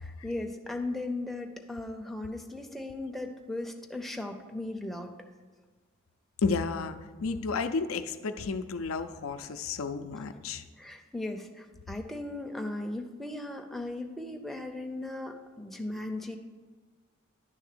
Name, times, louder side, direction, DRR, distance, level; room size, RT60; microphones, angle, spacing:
voice 1, 0.0-5.1 10.8-16.4, left 2 dB, ahead, 2 dB, 0.5 m, -37 dB
voice 2, 6.4-10.6, left 4 dB, 85° left, 9 dB, 0.5 m, -32 dB
10.0 x 3.5 x 6.7 m, 1.4 s
head